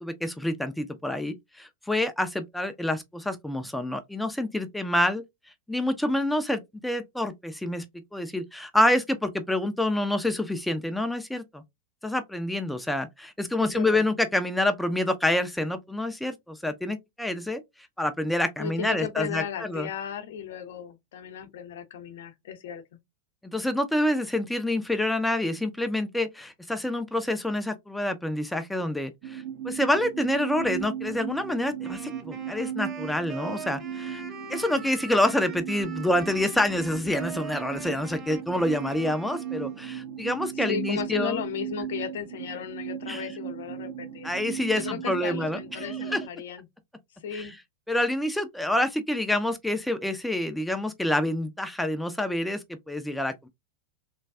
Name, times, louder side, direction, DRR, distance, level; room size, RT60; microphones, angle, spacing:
voice 1, 0.0-5.2 5.7-7.8 8.1-11.6 12.0-17.6 18.0-19.9 23.4-34.2 34.5-41.4 43.1-43.2 44.2-46.2 47.3-47.6 47.9-53.5, left 1 dB, 5° left, 0.4 m, -27 dB
voice 2, 13.6-14.0 18.6-22.8 40.6-44.3 44.7-46.6 47.2-47.5, left 8 dB, 55° left, 0.6 m, -35 dB
sound 1, 29.2-46.3, right 10 dB, 50° right, 0.5 m, -37 dB
Wind instrument woodwind instrument, 31.8-40.0, right 4 dB, 25° right, 0.8 m, -43 dB
3.3 x 2.2 x 2.3 m
figure-of-eight pair, 90°, 0 cm